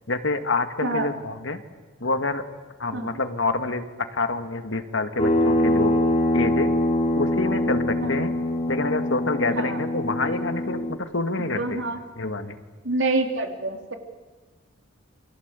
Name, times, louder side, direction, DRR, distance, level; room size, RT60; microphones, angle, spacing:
voice 1, 0.1-1.6 2.0-2.5 2.8-3.8 4.1-6.0 6.3-6.7 7.1-8.3 8.7-11.8 12.2-12.6, left 3 dB, 75° left, 8 dB, 1.9 m, -27 dB
sound 1, 5.2-11.0, left 1 dB, 30° left, 2.9 m, -23 dB
voice 2, 11.4-12.0 12.8-13.9, right 2 dB, 75° right, 4 dB, 3.3 m, -27 dB
28.5 x 25.0 x 8.3 m, 1.3 s
head